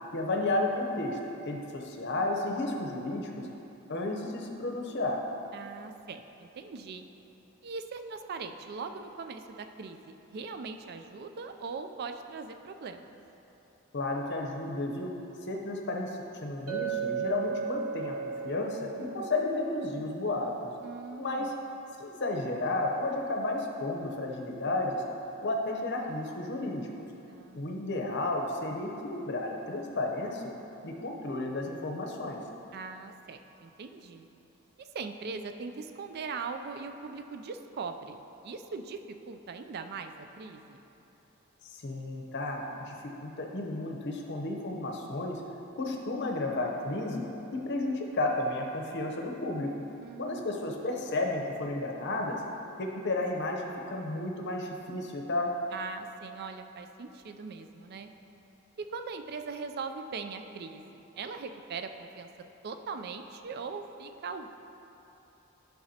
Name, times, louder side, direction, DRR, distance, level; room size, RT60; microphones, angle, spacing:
voice 1, 0.1-1.2 1.5-3.5 3.9-5.2 13.9-15.1 15.5-20.7 21.2-21.5 22.0-25.0 25.4-27.1 27.6-30.5 30.8-32.4 41.6-42.9 43.2-45.4 45.7-47.2 47.5-49.7 50.2-52.4 52.8-55.5, left 2 dB, 55° left, 1 dB, 0.8 m, -32 dB
voice 2, 5.5-7.0 7.6-13.1 20.8-21.5 27.3-27.8 32.7-34.3 34.8-39.0 39.3-40.8 50.0-50.7 55.7-58.1 58.8-62.3 62.6-64.5, right 4 dB, 45° right, 7 dB, 0.3 m, -40 dB
Chink clink, 16.7-21.1, right 7 dB, 80° right, 0.8 m, -36 dB
10.5 x 5.9 x 2.8 m, 3.0 s
head